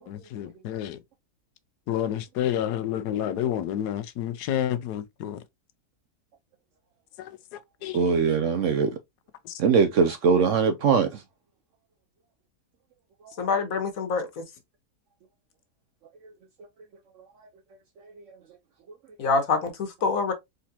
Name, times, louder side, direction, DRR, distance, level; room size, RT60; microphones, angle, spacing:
voice 1, 0.1-1.0 1.9-5.4 7.2-7.4 7.8-8.4 9.5-9.6, left 10 dB, 85° left, 1.2 m, -30 dB
voice 2, 7.9-8.9 9.6-11.2, right 5 dB, 70° right, 0.8 m, -21 dB
voice 3, 13.4-14.4 19.2-20.3, left 4 dB, 60° left, 1.4 m, -26 dB
4.2 x 3.9 x 2.8 m
omnidirectional pair, 1.7 m